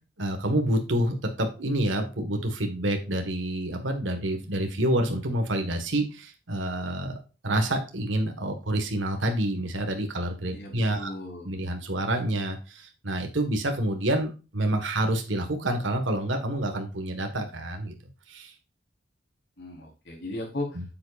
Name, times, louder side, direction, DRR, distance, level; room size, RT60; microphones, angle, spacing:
voice 1, 0.2-7.2 7.4-11.1 11.4-17.9 18.3-18.5 20.7-20.8, right 1 dB, 70° right, 4 dB, 1.6 m, -28 dB
voice 2, 10.5-11.5 19.6-20.8, left 1 dB, 65° left, 0 dB, 4.1 m, -36 dB
9.2 x 7.2 x 2.5 m, 0.31 s
head